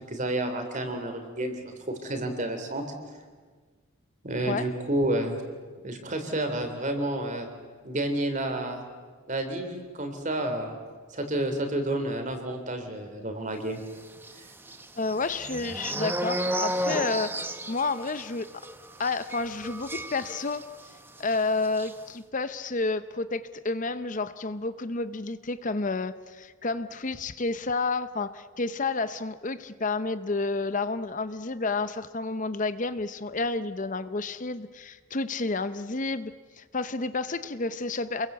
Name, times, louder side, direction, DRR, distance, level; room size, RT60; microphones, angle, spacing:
voice 1, 0.1-2.8 4.2-5.4 5.8-7.5 7.8-8.8 9.3-10.7 11.1-13.8, right 1 dB, 35° right, 6 dB, 3.6 m, -30 dB
sound 1, 14.2-20.9 21.2-21.4 21.6-21.9, right 1 dB, 10° right, 1.1 m, -33 dB
voice 2, 15.0-17.3 17.7-18.5 19.0-20.6 21.2-36.3 36.6-38.3, left 3 dB, 35° left, 12 dB, 0.7 m, -30 dB
28.5 x 22.0 x 8.2 m, 1.5 s
head